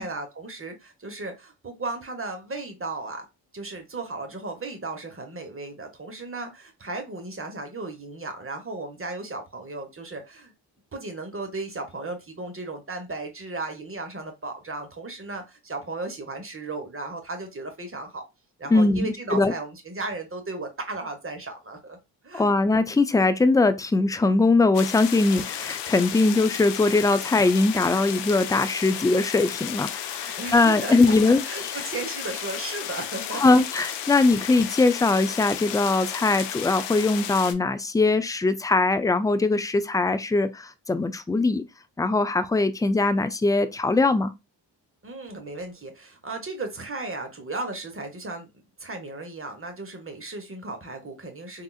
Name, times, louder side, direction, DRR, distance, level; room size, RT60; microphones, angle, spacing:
voice 1, 0.0-3.2 3.5-10.5 10.9-18.2 18.6-22.0 22.2-22.6 30.4-33.6 34.4-34.5 45.0-51.6, right 3 dB, 30° right, 1.2 m, -35 dB
voice 2, 18.7-19.5 22.3-31.4 33.3-41.6 42.0-44.3, left 3 dB, 10° left, 0.4 m, -21 dB
sound 1, 24.7-37.5, left 10 dB, 65° left, 0.6 m, -34 dB
3.6 x 2.4 x 2.4 m
supercardioid pair, 45°, 45 cm